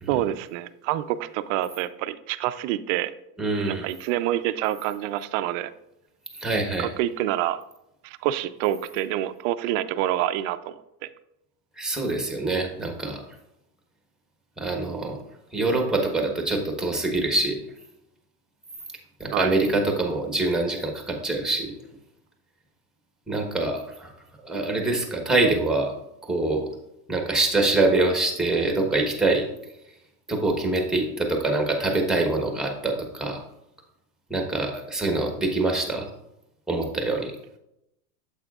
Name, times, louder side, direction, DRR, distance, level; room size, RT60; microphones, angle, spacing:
voice 1, 0.1-3.1 3.6-5.7 6.8-7.6 8.0-10.7 11.0-11.1 19.3-19.6, right 13 dB, 55° right, 13 dB, 0.5 m, -27 dB
voice 2, 3.4-3.9 6.3-6.9 11.8-13.2 14.6-15.2 15.5-17.6 19.2-21.7 23.3-24.1 24.4-25.9 26.2-26.7 27.1-29.5 30.3-33.4 34.3-36.1 36.7-37.3, right 2 dB, ahead, 2 dB, 1.1 m, -25 dB
8.8 x 7.5 x 2.4 m, 0.84 s
supercardioid pair, 140°, 48 cm